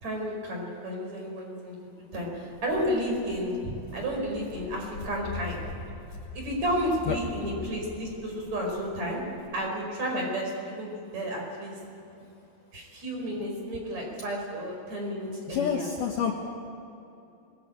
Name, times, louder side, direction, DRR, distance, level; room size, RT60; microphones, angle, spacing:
voice 1, 0.0-1.8 2.1-5.6 6.3-9.2 9.5-11.7 12.7-15.9, equal, 35° right, 0 dB, 5.7 m, -32 dB
Walk footsteps, 2.5-9.5, left 4 dB, 55° left, 3.6 m, -43 dB
voice 2, 15.5-16.3, left 7 dB, 85° left, 2 dB, 1.8 m, -28 dB
23.5 x 20.0 x 8.7 m, 2.7 s
omnidirectional pair, 5.7 m